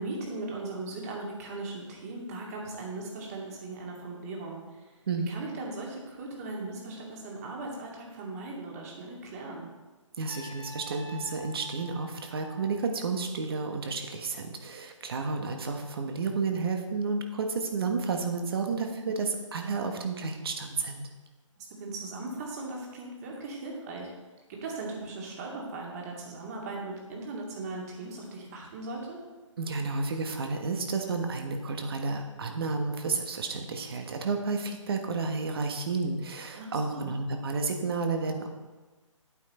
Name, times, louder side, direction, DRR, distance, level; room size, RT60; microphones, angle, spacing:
voice 1, 0.0-4.8 5.3-9.7 19.0-19.2 21.6-24.1 24.5-29.2 36.6-37.1, right 2 dB, 30° right, -1 dB, 2.2 m, -38 dB
voice 2, 10.2-21.1 29.6-38.5, right 4 dB, 45° right, 4 dB, 1.4 m, -31 dB
Trumpet, 10.3-13.2, right 2 dB, 5° left, 2.1 m, -48 dB
8.8 x 8.6 x 4.3 m, 1.2 s
figure-of-eight pair, 150°, 17 cm